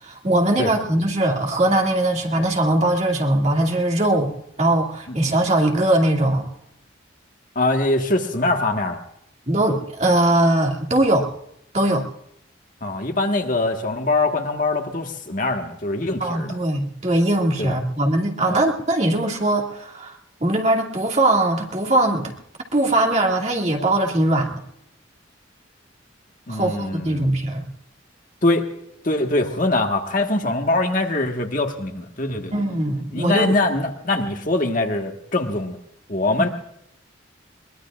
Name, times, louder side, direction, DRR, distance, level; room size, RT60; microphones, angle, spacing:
voice 1, 0.0-6.5 9.5-11.3 11.7-12.0 16.2-20.1 20.4-22.3 22.7-24.6 26.5-27.7 32.5-33.6, right 1 dB, 35° right, 1 dB, 2.3 m, -20 dB
voice 2, 7.5-9.0 12.8-16.5 17.6-17.8 18.5-18.6 26.5-27.3 28.4-28.7 29.0-32.5 33.1-35.8 36.1-36.5, left 2 dB, 45° left, 4 dB, 1.5 m, -23 dB
22.5 x 20.5 x 2.4 m, 0.76 s
head